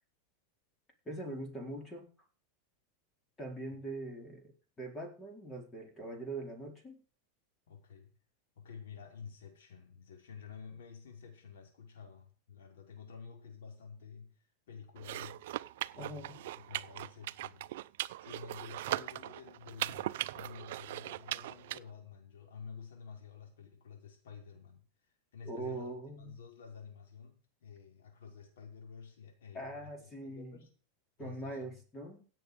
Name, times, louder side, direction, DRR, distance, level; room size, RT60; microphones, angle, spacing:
voice 1, 1.1-2.1 3.4-4.5 4.8-7.0 16.0-16.4 25.4-26.3 29.5-30.6 31.2-32.2, right 2 dB, 15° left, 4.1 m, -42 dB
voice 2, 7.7-8.2 8.6-17.7 18.2-30.7 31.2-31.8, left 6 dB, 90° left, 5.2 m, -51 dB
sound 1, 15.0-21.8, right 15 dB, 70° right, 0.5 m, -39 dB
16.5 x 7.7 x 5.2 m
supercardioid pair, 145°, 0 cm